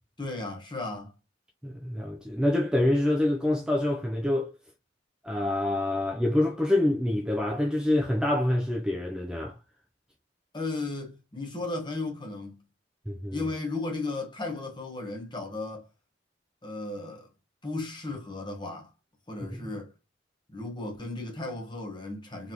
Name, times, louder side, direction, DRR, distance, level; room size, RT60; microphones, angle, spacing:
voice 1, 0.2-1.1 10.5-12.6 13.3-15.9 16.6-17.3 17.6-18.9 19.3-19.9 20.5-22.5, left 2 dB, 25° left, 1.1 m, -35 dB
voice 2, 1.6-4.5 5.2-9.6 13.1-13.5 19.4-19.7, left 1 dB, 5° right, 0.4 m, -26 dB
4.0 x 3.4 x 2.8 m
head